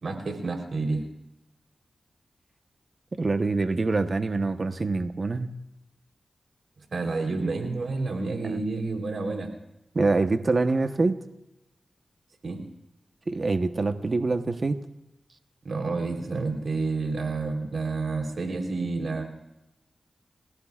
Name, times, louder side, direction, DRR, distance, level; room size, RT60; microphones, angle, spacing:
voice 1, 0.0-1.0 6.9-9.5 12.4-12.6 15.6-19.2, right 3 dB, 75° right, 2 dB, 3.7 m, -29 dB
voice 2, 3.2-5.5 8.4-8.6 9.9-11.2 13.3-14.8, right 3 dB, 50° right, 8 dB, 1.1 m, -25 dB
30.0 x 16.5 x 2.5 m, 0.91 s
cardioid pair, 50°, 0 cm